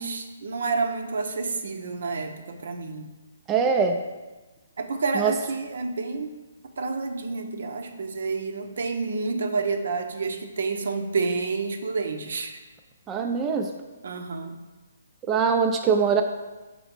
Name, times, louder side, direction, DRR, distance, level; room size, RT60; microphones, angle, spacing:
voice 1, 0.0-3.1 4.8-6.3 6.8-12.6 14.0-14.6, right 4 dB, 70° right, 6 dB, 0.7 m, -29 dB
voice 2, 3.5-4.0 5.2-5.3 13.1-13.7 15.3-16.2, right 6 dB, 15° right, 3 dB, 0.3 m, -22 dB
5.5 x 4.3 x 4.3 m, 1.2 s
hypercardioid pair, 155°, 0 cm